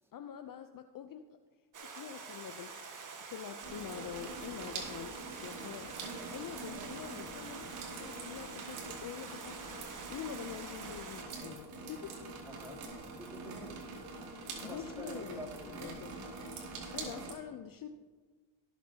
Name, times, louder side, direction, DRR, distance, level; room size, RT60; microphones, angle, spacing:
voice 1, 0.1-1.3 1.8-2.9 3.3-12.2 14.3-16.3 16.9-17.9, left 9 dB, 45° left, 8 dB, 0.7 m, -46 dB
Stream, 1.7-11.2, right 5 dB, 40° right, 1.7 m, -47 dB
sound 1, 3.6-17.3, right 3 dB, 75° right, 2.5 m, -45 dB
voice 2, 12.5-13.7 14.1-16.2 17.1-17.2, right 1 dB, 5° right, -2 dB, 3.1 m, -49 dB
18.5 x 7.3 x 2.9 m, 1.4 s
supercardioid pair, 65°, 50 cm